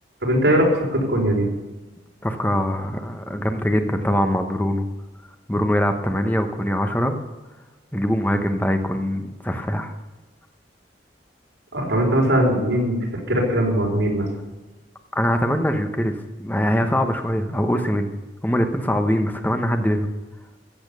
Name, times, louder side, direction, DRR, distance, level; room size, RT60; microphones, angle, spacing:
voice 1, 0.2-1.5 11.7-13.0 13.3-14.3, equal, 90° right, -1 dB, 4.7 m, -20 dB
voice 2, 2.2-4.9 5.5-7.2 7.9-9.9 15.1-18.1 18.4-20.1, equal, 10° left, 6 dB, 1.0 m, -22 dB
14.5 x 8.8 x 6.7 m, 1.2 s
head